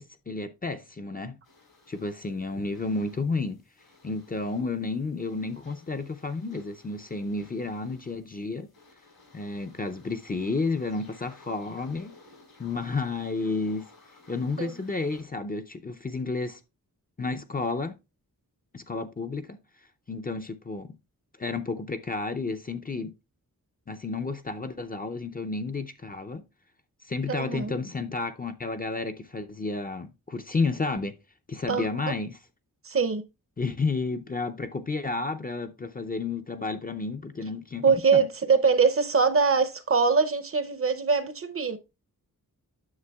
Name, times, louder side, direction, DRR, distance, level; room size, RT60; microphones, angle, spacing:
voice 1, 0.0-1.4 1.9-3.6 4.0-8.7 9.3-12.1 12.6-13.9 14.3-16.6 17.2-17.9 18.7-19.6 20.1-21.0 21.4-23.1 23.9-26.4 27.0-31.1 31.5-32.4 33.6-38.3, left 3 dB, 25° left, 0.5 m, -31 dB
sound 1, 1.4-15.2, left 3 dB, 80° left, 3.9 m, -56 dB
voice 2, 27.3-27.7 31.7-31.9 32.8-33.2 37.8-41.8, right 5 dB, 40° right, 0.6 m, -23 dB
9.6 x 6.7 x 2.3 m
wide cardioid pair, 115°, 36 cm